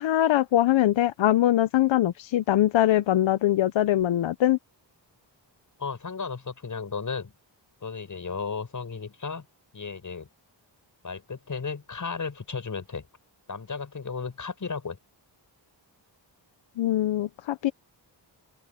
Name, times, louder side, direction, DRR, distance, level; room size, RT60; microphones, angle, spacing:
voice 1, 0.0-4.6 16.8-17.7, left 13 dB, 90° left, 0.7 m, -22 dB
voice 2, 5.8-7.3 7.8-9.5 9.7-10.3 11.0-13.1 13.5-15.0, left 5 dB, 45° left, 7.2 m, -34 dB
open air
wide cardioid pair, 125°, 44 cm